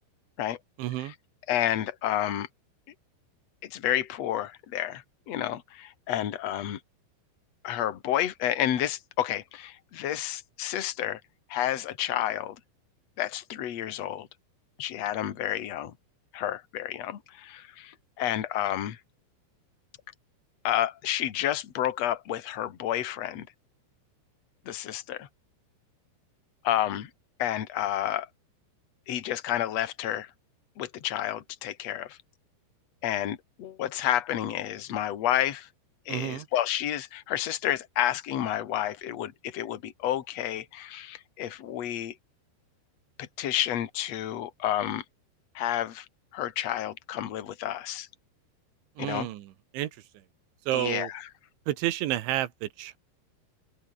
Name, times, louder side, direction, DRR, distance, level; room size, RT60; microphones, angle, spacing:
voice 1, 0.8-1.1 36.1-36.5 49.0-49.9 50.7-51.1 51.7-53.0, right 14 dB, 85° right, 3.8 m, -30 dB
voice 2, 1.5-2.5 3.6-6.8 7.6-11.2 11.5-12.6 13.2-14.3 14.8-15.9 16.3-19.0 20.6-23.5 24.7-25.3 26.6-27.1 27.4-28.3 29.1-30.3 30.8-32.2 33.0-35.7 36.1-42.1 43.2-45.0 45.5-46.1 46.3-48.1 49.0-49.3 50.7-51.1, left 12 dB, 50° left, 2.3 m, -30 dB
open air
omnidirectional pair, 5.3 m